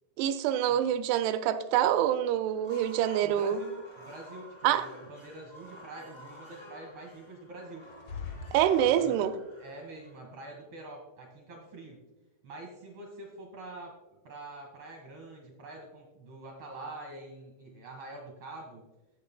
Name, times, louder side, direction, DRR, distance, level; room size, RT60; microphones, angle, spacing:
voice 1, 0.2-3.6 4.6-4.9 8.5-9.3, right 11 dB, 85° right, 2.6 m, -26 dB
sound 1, 2.5-10.6, equal, 10° left, 2.2 m, -51 dB
voice 2, 3.2-7.9 8.8-9.3 9.6-12.0 12.4-18.8, right 2 dB, 55° right, 1.8 m, -46 dB
sound 2, 7.8-9.5, left 5 dB, 75° left, 1.6 m, -43 dB
13.0 x 7.8 x 2.2 m
omnidirectional pair, 4.7 m